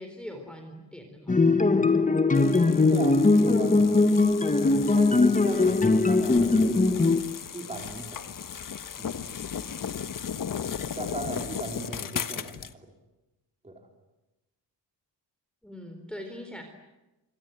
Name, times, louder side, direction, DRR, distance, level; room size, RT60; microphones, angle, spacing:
voice 1, 0.0-1.4 15.6-16.6, left 1 dB, ahead, 4 dB, 4.0 m, -41 dB
sound 1, 1.3-7.2, left 3 dB, 20° left, 1.5 m, -21 dB
sound 2, 2.3-12.7, left 8 dB, 50° left, 1.4 m, -36 dB
voice 2, 2.3-4.0 4.9-7.0 7.5-8.2 9.0-9.2 11.0-12.9 13.6-13.8, right 2 dB, 15° right, 2 dB, 4.4 m, -38 dB
27.0 x 24.0 x 9.1 m, 1.0 s
cardioid pair, 120°, 43 cm